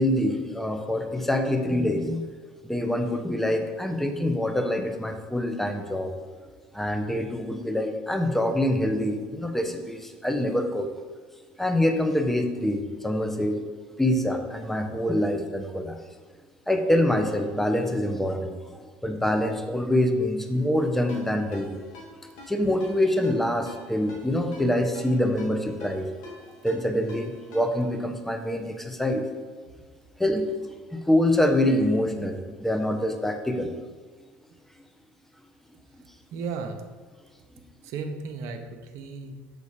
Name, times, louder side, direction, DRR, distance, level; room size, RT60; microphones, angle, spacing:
voice 1, 0.0-2.3 2.6-6.1 6.7-10.9 11.6-13.6 14.0-16.0 16.7-18.6 19.0-21.8 22.5-26.1 26.6-29.2 30.2-30.5 30.9-33.7, left 1 dB, 5° left, 5 dB, 0.8 m, -25 dB
Ringtone, 21.1-27.9, left 2 dB, 80° left, 1.9 m, -47 dB
voice 2, 36.3-36.8 37.8-39.4, right 4 dB, 65° right, 5 dB, 0.9 m, -35 dB
6.9 x 4.0 x 5.0 m, 1.5 s
supercardioid pair, 85°, 5 cm